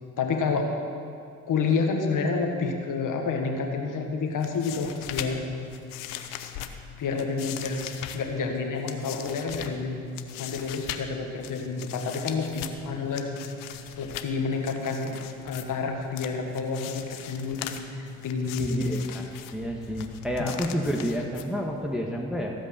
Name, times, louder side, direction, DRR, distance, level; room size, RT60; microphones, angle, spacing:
voice 1, 0.2-0.7 1.5-5.4 7.0-7.8 8.1-10.0 10.4-13.4 14.0-15.2 15.4-18.8 20.4-20.6, left 4 dB, 70° left, 3 dB, 1.6 m, -29 dB
sound 1, 4.3-21.9, left 10 dB, 90° left, 0.6 m, -40 dB
voice 2, 18.6-22.5, equal, ahead, -1 dB, 1.5 m, -30 dB
15.5 x 5.4 x 7.4 m, 2.5 s
supercardioid pair, 50°, 32 cm